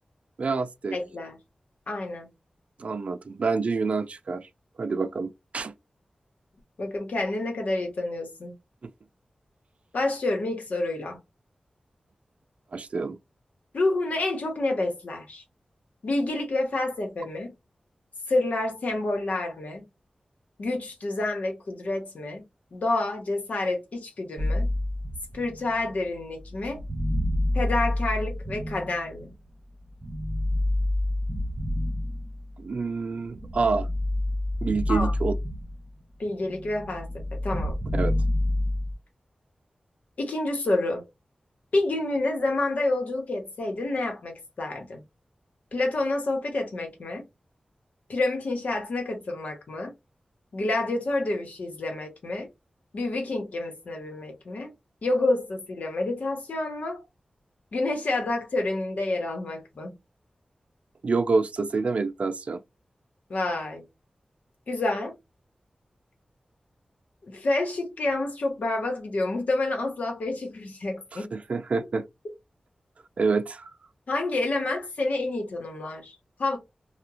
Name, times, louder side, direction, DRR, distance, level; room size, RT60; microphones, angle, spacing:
voice 1, 0.4-1.0 2.8-4.5 4.8-5.7 12.7-13.2 32.6-33.9 34.6-35.3 37.9-38.1 61.0-62.6 71.1-72.0 73.2-73.7, right 4 dB, 60° right, 0.3 m, -27 dB
voice 2, 0.9-1.4 1.9-2.3 6.8-8.6 9.9-11.2 13.7-15.4 16.0-17.5 18.3-19.8 20.6-22.4 22.7-24.7 25.3-26.8 27.5-29.3 34.9-35.1 36.2-37.8 40.2-41.1 41.7-45.0 45.7-47.2 48.1-49.9 50.5-52.5 52.9-54.7 55.0-57.0 57.7-59.9 63.3-63.8 64.7-65.1 67.2-71.3 74.1-76.6, left 2 dB, 75° left, 1.1 m, -28 dB
sound 1, 24.4-29.5 30.0-32.7 33.1-36.0 36.3-38.9, left 1 dB, 25° right, 0.9 m, -28 dB
2.9 x 2.4 x 2.4 m
wide cardioid pair, 110°, 3 cm